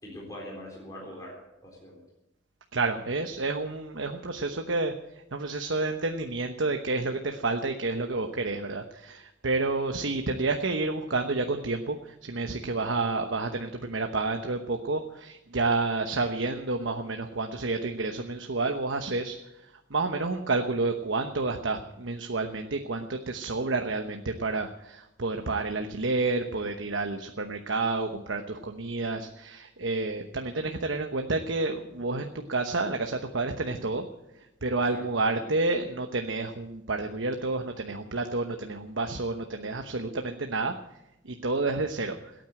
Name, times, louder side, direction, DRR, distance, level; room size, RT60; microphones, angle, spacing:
voice 1, 0.0-2.0 34.9-35.1 35.4-35.5, left 1 dB, 20° left, -3 dB, 3.8 m, -43 dB
voice 2, 2.7-5.0 5.3-19.4 19.6-34.1 34.6-40.7 41.2-42.2, right 3 dB, 85° right, 5 dB, 1.0 m, -30 dB
17.0 x 9.2 x 8.9 m, 0.90 s
head